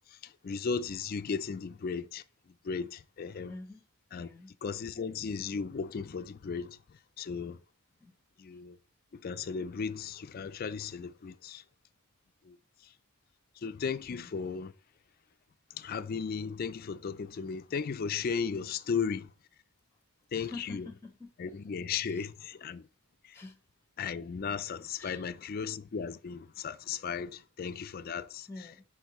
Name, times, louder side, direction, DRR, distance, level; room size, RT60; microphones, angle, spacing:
voice 1, 0.2-2.2 2.6-3.5 4.1-4.3 4.6-6.8 7.2-7.6 8.4-8.8 9.1-11.6 12.5-12.6 13.6-14.7 15.7-19.3 20.3-20.9 21.4-22.8 23.3-23.4 24.0-28.5, left 6 dB, 40° left, 0.3 m, -35 dB
voice 2, 3.5-3.8 4.2-4.5 8.0-8.1 14.1-14.3 20.3-21.3 23.3-23.6 25.0-25.3 28.5-28.8, left 2 dB, 10° left, 0.8 m, -46 dB
7.9 x 4.6 x 3.1 m
head